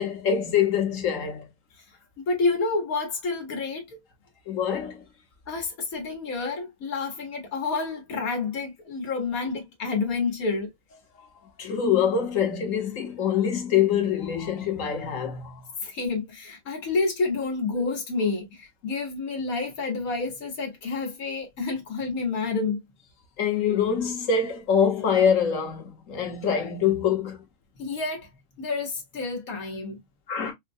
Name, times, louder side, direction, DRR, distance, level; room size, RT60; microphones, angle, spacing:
voice 1, 0.0-1.5 4.5-5.0 11.1-11.3 11.6-15.6 23.4-27.4 30.3-30.5, left 7 dB, 65° left, 1.4 m, -25 dB
voice 2, 2.2-4.0 5.5-10.7 15.8-22.8 27.8-28.3 28.6-30.0, left 4 dB, 85° left, 1.6 m, -29 dB
4.9 x 2.1 x 2.6 m
omnidirectional pair, 1.5 m